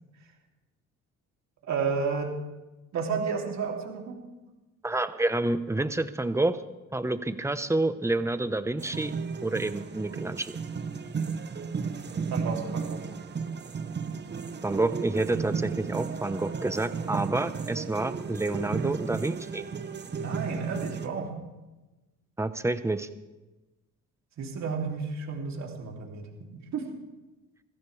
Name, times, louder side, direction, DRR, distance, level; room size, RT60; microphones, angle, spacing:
voice 1, 1.7-2.3 2.9-4.2 12.3-13.1 18.8-18.9 20.1-21.3 24.4-26.3 26.5-26.9, right 5 dB, 65° right, 0 dB, 3.0 m, -32 dB
voice 2, 4.8-6.6 6.9-9.1 9.4-10.5 14.6-19.7 22.4-23.1, right 2 dB, 10° right, 11 dB, 0.9 m, -28 dB
sound 1, 8.8-21.1, right 5 dB, 35° right, 1.0 m, -34 dB
21.5 x 15.5 x 3.4 m, 1.1 s
cardioid pair, 90°, 30 cm